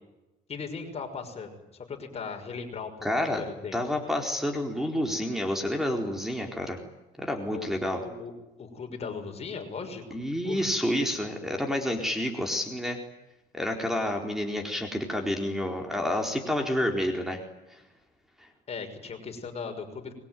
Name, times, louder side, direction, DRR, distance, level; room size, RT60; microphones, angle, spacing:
voice 1, 0.5-3.8 7.5-8.3 8.6-10.0 10.4-10.7 18.7-20.1, left 5 dB, 40° left, 5 dB, 6.1 m, -38 dB
voice 2, 3.0-3.4 3.7-6.8 7.2-8.0 10.1-13.0 13.5-17.4 17.7-17.8 18.4-18.5, left 1 dB, ahead, 4 dB, 4.3 m, -29 dB
26.0 x 22.0 x 9.4 m, 0.98 s
cardioid pair, 110°, 17 cm